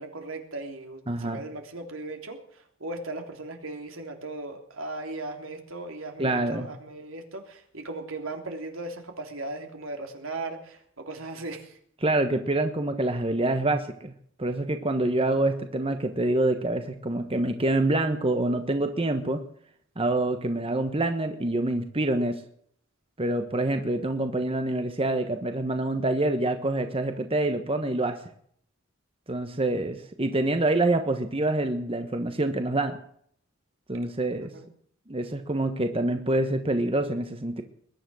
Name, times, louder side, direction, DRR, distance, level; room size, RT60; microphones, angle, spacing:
voice 1, 0.0-11.8 34.4-34.7, right 2 dB, 75° right, 4 dB, 3.4 m, -37 dB
voice 2, 1.1-1.4 6.2-6.7 12.0-14.1 14.4-19.4 20.0-22.4 23.2-28.2 29.3-33.0 33.9-34.5 35.1-37.6, right 2 dB, 25° right, 7 dB, 1.2 m, -26 dB
21.5 x 10.5 x 6.3 m, 0.63 s
head